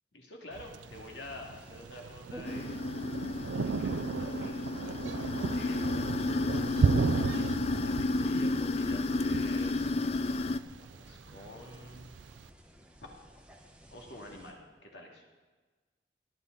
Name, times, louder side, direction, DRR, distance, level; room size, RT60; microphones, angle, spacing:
voice 1, 0.1-2.7 3.6-9.8 10.8-12.1 13.9-15.2, left 1 dB, 70° left, 0 dB, 2.5 m, -48 dB
Thunder, 0.5-12.5, right 5 dB, 90° right, 0.4 m, -35 dB
sound 1, 0.8-14.5, equal, 5° right, 1.1 m, -54 dB
sound 2, 2.5-10.6, left 3 dB, 35° left, 0.3 m, -32 dB
19.0 x 11.0 x 4.1 m, 1.3 s
head